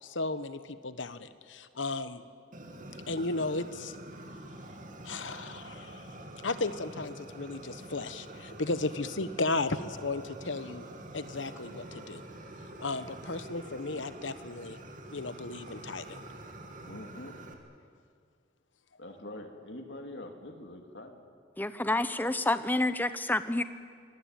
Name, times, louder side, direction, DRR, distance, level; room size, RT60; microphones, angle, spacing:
voice 1, 0.0-2.2 3.1-3.9 5.0-6.2 6.4-10.8 11.1-12.2 12.8-14.8 15.1-16.2, left 3 dB, 80° left, 12 dB, 1.2 m, -35 dB
Fire, 2.5-17.5, right 1 dB, 45° right, 2.4 m, -46 dB
voice 2, 16.8-17.4 19.0-21.2, left 1 dB, 65° left, 4 dB, 2.7 m, -44 dB
voice 3, 21.6-23.6, left 2 dB, 10° left, 12 dB, 0.8 m, -28 dB
24.5 x 19.0 x 9.1 m, 2.1 s
head